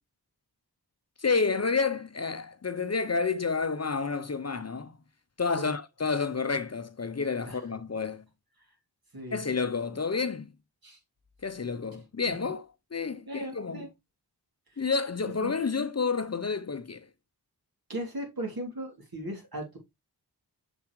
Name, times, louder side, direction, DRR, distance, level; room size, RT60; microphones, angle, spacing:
voice 1, 1.2-5.0 5.4-8.2 9.3-10.5 11.4-12.6 12.9-13.9 14.8-17.1, left 4 dB, 40° left, 0.6 m, -30 dB
voice 2, 9.1-9.4 10.8-11.0 13.2-13.9 14.7-14.8 15.4-15.5 17.9-19.8, right 1 dB, 60° right, 3.2 m, -37 dB
7.1 x 6.1 x 3.1 m
wide cardioid pair, 65°, 40 cm